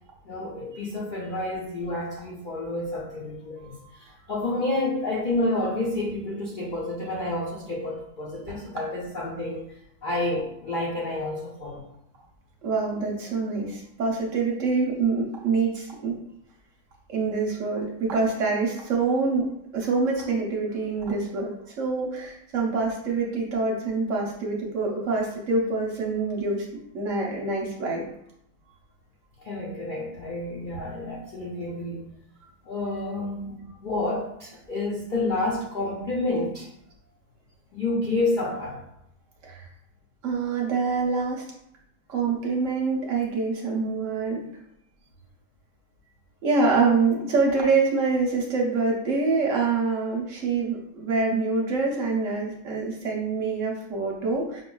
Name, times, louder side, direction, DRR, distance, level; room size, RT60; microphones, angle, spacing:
voice 1, 0.2-9.7 10.0-11.8 29.4-32.1 32.6-36.7 37.7-38.8, left 2 dB, 75° left, -4 dB, 0.4 m, -29 dB
voice 2, 3.6-3.9 12.6-16.2 17.1-19.5 19.7-26.7 26.9-28.1 39.4-39.7 40.2-41.4 42.1-44.4 46.4-54.6, right 4 dB, 65° right, -2 dB, 0.9 m, -25 dB
5.4 x 2.3 x 2.2 m, 0.77 s
omnidirectional pair, 1.7 m